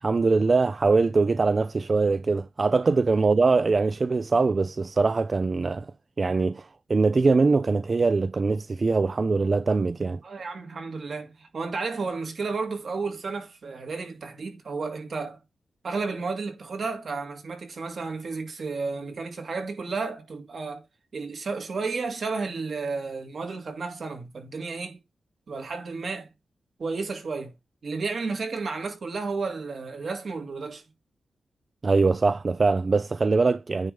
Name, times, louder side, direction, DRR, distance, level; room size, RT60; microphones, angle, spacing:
voice 1, 0.0-10.2 31.8-33.9, right 4 dB, 35° right, 0.3 m, -22 dB
voice 2, 10.2-15.4 15.8-20.9 21.1-25.0 25.5-26.3 26.8-27.5 27.8-30.8, right 4 dB, 55° right, 2.1 m, -32 dB
9.5 x 3.3 x 5.3 m
wide cardioid pair, 130°, 0 cm